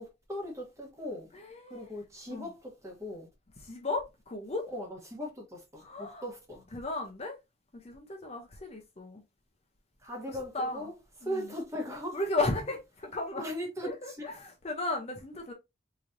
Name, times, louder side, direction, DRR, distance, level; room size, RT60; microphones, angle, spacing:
voice 1, 0.0-1.3 1.7-3.3 4.7-6.6 10.0-10.9 11.2-12.2 13.4-13.9, equal, 15° right, 1.2 m, -39 dB
voice 2, 1.3-1.9 2.3-2.5 3.6-4.7 5.8-6.2 6.7-7.4 7.7-9.2 10.3-10.9 11.2-11.5 12.1-13.5 13.8-15.5, left 2 dB, 35° left, 0.7 m, -35 dB
3.8 x 3.2 x 2.6 m
head